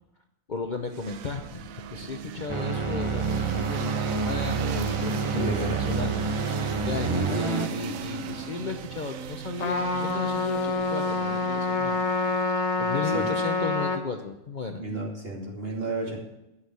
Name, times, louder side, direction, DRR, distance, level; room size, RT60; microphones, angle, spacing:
voice 1, 0.5-12.0 12.8-14.8, left 4 dB, 40° left, 4 dB, 0.9 m, -35 dB
sound 1, 0.9-12.7, right 8 dB, 80° right, 1.1 m, -37 dB
sound 2, 2.5-7.7, right 4 dB, 25° right, 1.0 m, -28 dB
voice 2, 5.3-6.2 13.1-13.2 14.8-16.2, right 1 dB, 45° right, -1 dB, 2.9 m, -32 dB
Trumpet, 9.6-14.0, left 3 dB, 80° left, 1.5 m, -27 dB
11.5 x 6.5 x 9.4 m, 0.91 s
omnidirectional pair, 1.4 m